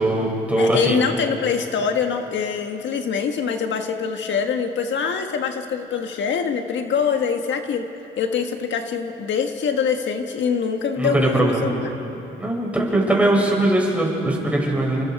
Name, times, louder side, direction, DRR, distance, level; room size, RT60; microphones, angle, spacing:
voice 1, 0.0-1.0 11.0-11.8 12.4-15.0, right 1 dB, 5° right, -2 dB, 6.3 m, -20 dB
voice 2, 0.6-7.9 8.2-11.8, left 6 dB, 65° left, 5 dB, 1.5 m, -24 dB
29.0 x 24.5 x 4.8 m, 3.0 s
cardioid pair, 90°, 20 cm